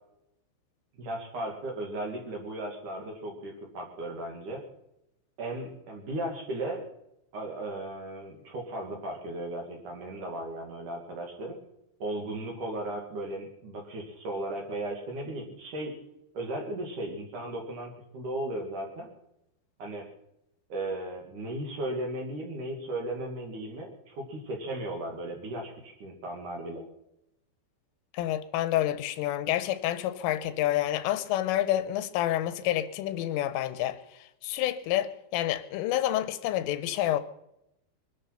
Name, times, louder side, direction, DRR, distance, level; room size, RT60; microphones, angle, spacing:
voice 1, 0.9-4.6 5.4-6.8 7.3-11.6 12.0-15.9 16.3-19.1 19.8-20.1 20.7-26.8, right 1 dB, 50° right, 3.1 m, -36 dB
voice 2, 28.1-34.0 34.4-37.2, left 13 dB, 85° left, 3.5 m, -28 dB
22.0 x 11.5 x 5.8 m
omnidirectional pair, 5.6 m